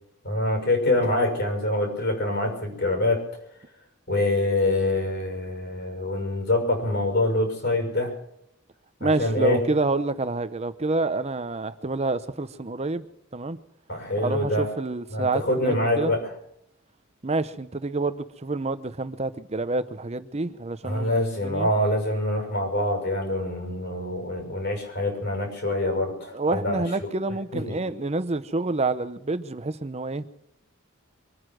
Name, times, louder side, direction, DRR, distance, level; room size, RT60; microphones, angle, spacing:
voice 1, 0.2-3.2 4.1-8.1 9.0-9.6 13.9-14.7 15.1-16.2 20.8-27.1 27.5-27.8, left 1 dB, 50° left, 3 dB, 6.4 m, -25 dB
voice 2, 9.0-13.0 13.3-13.6 14.2-16.1 17.2-21.7 26.3-30.3, right 3 dB, 30° right, 13 dB, 0.7 m, -28 dB
24.5 x 9.6 x 6.2 m, 0.75 s
head